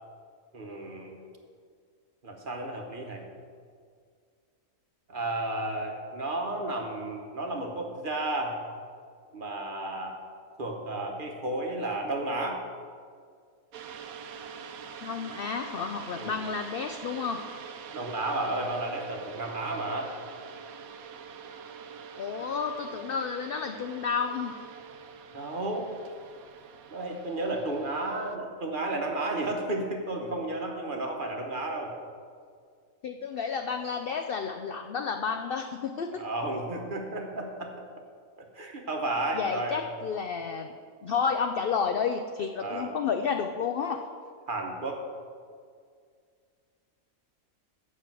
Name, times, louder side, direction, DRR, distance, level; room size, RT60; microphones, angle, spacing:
voice 1, 0.5-1.2 2.2-3.2 5.1-8.6 9.3-10.1 10.6-12.6 16.1-16.3 17.9-20.1 25.3-25.9 26.9-31.9 36.2-37.7 38.5-39.8 42.6-42.9 44.5-45.0, right 2 dB, 40° right, 2 dB, 1.2 m, -32 dB
sound 1, 13.7-28.4, right 6 dB, 80° right, 1.1 m, -45 dB
voice 2, 15.0-17.4 22.2-24.6 33.0-36.2 39.3-40.7 41.0-44.0, left 6 dB, 75° left, 6 dB, 0.5 m, -31 dB
8.0 x 6.3 x 7.4 m, 2.1 s
omnidirectional pair, 1.5 m